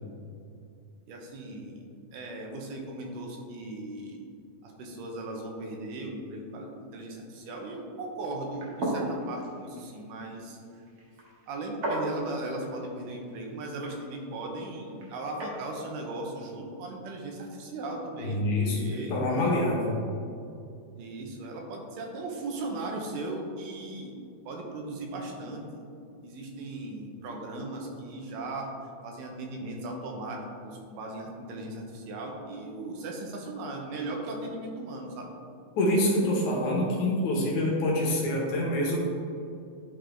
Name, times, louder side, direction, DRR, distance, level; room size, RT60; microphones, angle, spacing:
voice 1, 1.1-1.8 2.1-4.3 4.6-10.8 11.5-18.5 18.7-19.2 21.0-24.1 24.5-25.8 26.2-28.7 29.0-35.4, right 2 dB, 85° right, 1 dB, 2.5 m, -37 dB
sound 1, 8.4-15.6, right 1 dB, 60° right, 1.0 m, -37 dB
voice 2, 18.2-20.0 35.8-39.0, left 1 dB, 70° left, -3 dB, 2.5 m, -26 dB
10.5 x 3.8 x 3.3 m, 2.5 s
omnidirectional pair, 3.8 m